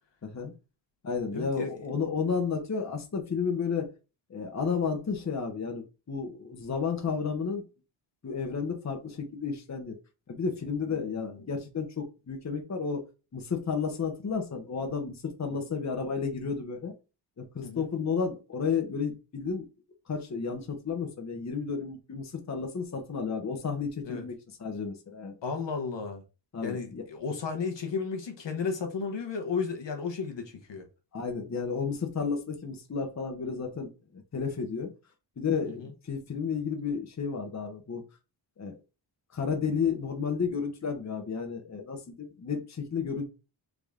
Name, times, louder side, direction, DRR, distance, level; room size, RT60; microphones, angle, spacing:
voice 1, 0.2-0.5 1.0-3.9 4.3-7.6 8.2-10.0 10.3-13.0 13.3-16.9 17.4-19.7 20.1-24.3 24.6-25.4 26.5-27.0 31.1-34.9 35.4-38.0 38.6-38.7 39.3-43.3, left 5 dB, 35° left, 1.0 m, -32 dB
voice 2, 1.3-1.7 10.9-11.4 15.5-15.6 17.6-17.9 24.0-24.3 25.4-26.2 26.6-30.9 35.7-35.9, left 5 dB, 65° left, 1.1 m, -34 dB
3.8 x 3.6 x 3.6 m
cardioid pair, 90°, 47 cm